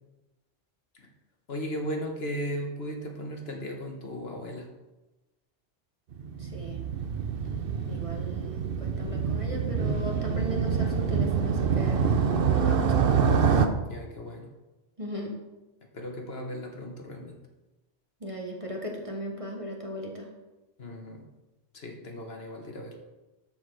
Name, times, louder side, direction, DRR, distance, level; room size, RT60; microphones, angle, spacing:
voice 1, 1.5-4.7 7.4-7.6 13.9-14.5 15.9-17.4 20.8-21.2 21.7-23.0, equal, 55° left, 2 dB, 1.5 m, -36 dB
Motorcycle, 6.1-13.7, right 6 dB, 55° right, 0.8 m, -26 dB
voice 2, 6.4-6.8 7.9-12.1 12.6-13.3 15.0-15.3 18.2-20.3, equal, 30° right, 0 dB, 1.2 m, -37 dB
13.0 x 4.5 x 4.7 m, 1.1 s
omnidirectional pair, 1.2 m